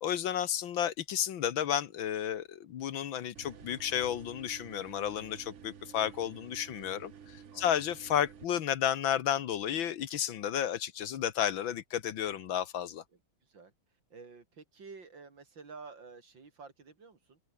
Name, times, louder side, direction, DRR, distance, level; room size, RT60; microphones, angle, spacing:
voice 1, 0.0-13.0, left 10 dB, 70° left, 1.8 m, -32 dB
sound 1, 3.3-8.4, right 7 dB, 45° right, 1.1 m, -51 dB
voice 2, 13.4-13.7 14.1-17.4, right 4 dB, 65° right, 4.0 m, -50 dB
omnidirectional pair, 2.2 m